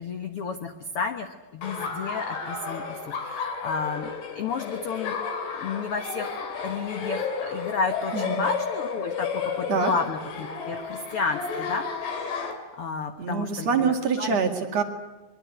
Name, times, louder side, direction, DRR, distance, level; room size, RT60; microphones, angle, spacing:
voice 1, 0.0-5.1 5.5-14.4, left 5 dB, 70° left, 7 dB, 1.3 m, -32 dB
Laughter, 1.6-12.5, left 5 dB, 90° left, 5.3 m, -32 dB
voice 2, 8.1-8.4 9.7-9.9 13.2-14.8, right 5 dB, 50° right, 4 dB, 2.9 m, -25 dB
23.0 x 22.5 x 9.5 m, 1.1 s
omnidirectional pair, 4.5 m